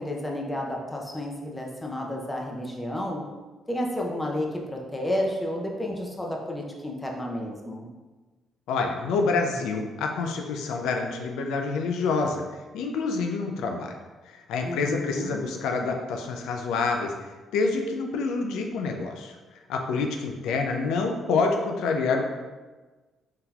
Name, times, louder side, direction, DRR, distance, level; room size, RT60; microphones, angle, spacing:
voice 1, 0.0-3.2 3.7-7.9 14.6-15.4, left 1 dB, 15° left, 0 dB, 0.5 m, -31 dB
voice 2, 8.7-12.4 12.7-13.9 14.3-17.1 17.5-19.4 19.7-22.3, left 4 dB, 90° left, 3 dB, 0.3 m, -27 dB
3.7 x 2.8 x 2.3 m, 1.3 s
cardioid pair, 90°, 0 cm